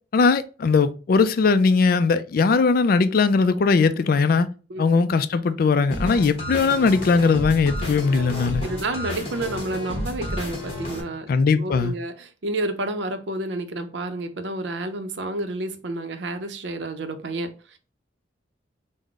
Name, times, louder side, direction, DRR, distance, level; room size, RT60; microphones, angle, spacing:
voice 1, 0.1-4.5 4.8-8.6 11.3-11.9, left 4 dB, 50° left, 0.3 m, -19 dB
sound 1, 5.9-11.0, left 1 dB, 30° left, 1.0 m, -31 dB
voice 2, 8.6-17.8, right 2 dB, 70° right, 0.6 m, -30 dB
3.7 x 2.1 x 3.4 m
head